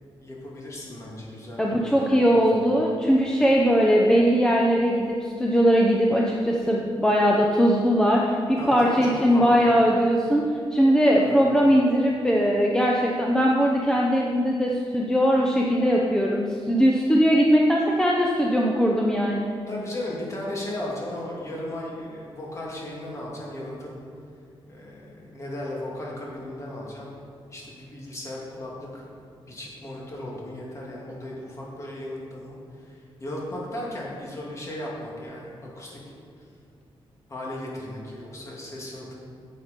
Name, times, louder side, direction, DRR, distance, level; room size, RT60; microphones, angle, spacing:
voice 1, 0.2-2.1 2.3-2.7 8.6-9.6 11.2-11.6 19.7-24.0 24.7-27.1 27.5-29.0 29.5-36.0 37.3-39.2, left 1 dB, 30° left, -4 dB, 2.3 m, -36 dB
voice 2, 1.6-10.5 10.7-19.5, equal, 5° left, -2 dB, 0.7 m, -20 dB
9.7 x 7.6 x 5.2 m, 2.3 s
wide cardioid pair, 155°, 10 cm